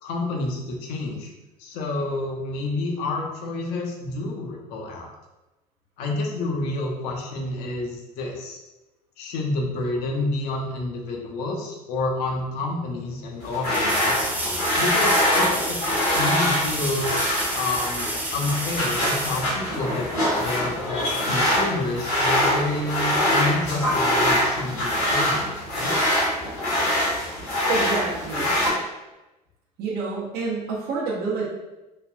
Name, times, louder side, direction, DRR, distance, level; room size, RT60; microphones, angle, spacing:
voice 1, 0.0-1.3 1.6-5.1 6.0-8.6 9.2-14.3 14.8-15.8 16.1-20.1 20.4-25.9, left 2 dB, 55° left, 0 dB, 0.6 m, -29 dB
sound 1, 12.3-12.4 13.7-20.3 23.2-23.3, right 1 dB, 10° right, 0.6 m, -31 dB
sound 2, 13.4-28.7, equal, 75° left, 1.1 m, -24 dB
voice 2, 27.7-28.6 29.8-31.5, right 4 dB, 50° right, -3 dB, 0.7 m, -28 dB
3.2 x 2.3 x 2.2 m, 1.0 s
figure-of-eight pair, 65°, 20 cm